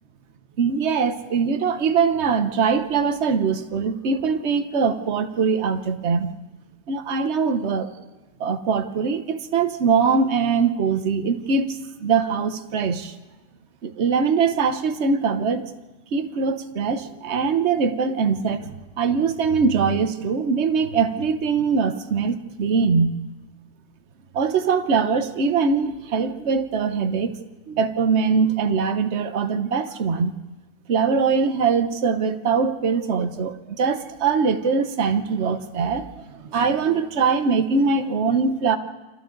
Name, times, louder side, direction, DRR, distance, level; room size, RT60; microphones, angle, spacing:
voice 1, 0.6-6.3 6.9-7.9 8.4-13.2 13.8-15.6 16.1-23.2 24.3-27.3 27.7-30.3 30.9-38.8, right 5 dB, 50° right, 8 dB, 1.2 m, -22 dB
29.5 x 24.5 x 3.9 m, 1.2 s
omnidirectional pair, 1.7 m